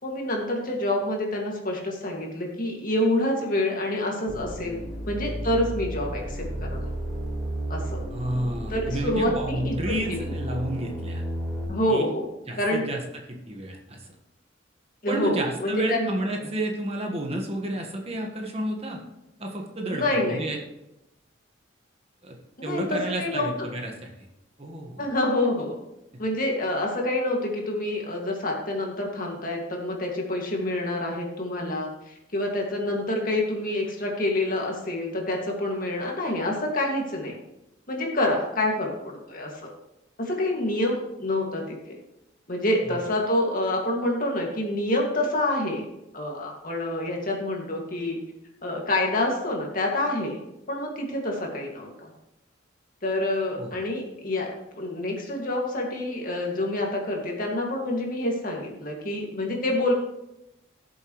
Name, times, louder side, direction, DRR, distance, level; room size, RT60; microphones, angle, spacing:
voice 1, 0.0-4.8 5.1-6.9 7.7-8.0 8.7-10.3 11.7-12.3 12.6-12.9 15.0-16.2 19.9-20.4 22.6-23.5 25.0-25.7 26.2-37.3 37.9-39.5 40.2-41.8 42.5-45.9 46.1-48.2 48.6-50.4 50.7-52.1 53.0-59.9, left 1 dB, 45° left, 0 dB, 2.2 m, -27 dB
sound 1, 4.3-11.6, right 1 dB, 5° right, 4.1 m, -33 dB
voice 2, 8.1-11.2 11.9-12.1 12.5-13.0 13.3-14.1 15.1-19.0 19.4-20.6 22.2-22.4 22.6-24.1 24.6-25.1 42.8-43.0 53.6-53.7, right 1 dB, 30° right, 1 dB, 1.5 m, -31 dB
17.0 x 7.1 x 3.2 m, 0.89 s
head